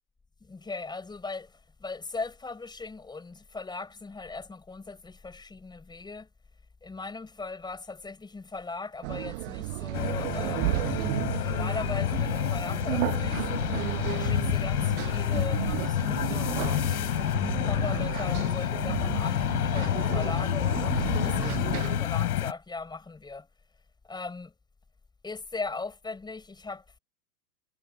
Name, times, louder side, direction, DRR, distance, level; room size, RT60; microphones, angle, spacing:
voice 1, 0.4-6.3 6.8-10.9 11.4-13.5 14.1-17.0 17.6-23.5 24.0-24.5 25.2-27.0, left 3 dB, 10° left, 4.7 m, -39 dB
sound 1, 9.0-22.0, right 22 dB, 45° right, 1.2 m, -33 dB
sound 2, 9.9-22.5, left 12 dB, 65° left, 4.7 m, -29 dB
hypercardioid pair, 120°, 49 cm